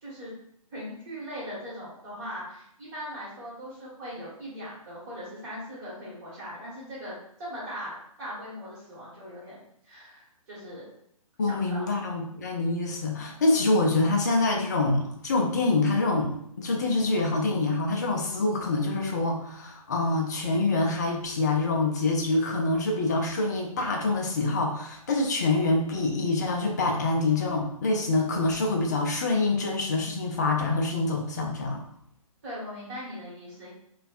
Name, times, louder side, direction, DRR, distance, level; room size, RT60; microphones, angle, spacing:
voice 1, 0.0-0.3 0.7-10.9 11.4-12.0 32.4-33.7, equal, 30° right, -7 dB, 1.5 m, -40 dB
voice 2, 11.4-31.8, left 2 dB, 30° left, 1 dB, 0.4 m, -26 dB
3.2 x 2.3 x 2.4 m, 0.72 s
figure-of-eight pair, 135°, 18 cm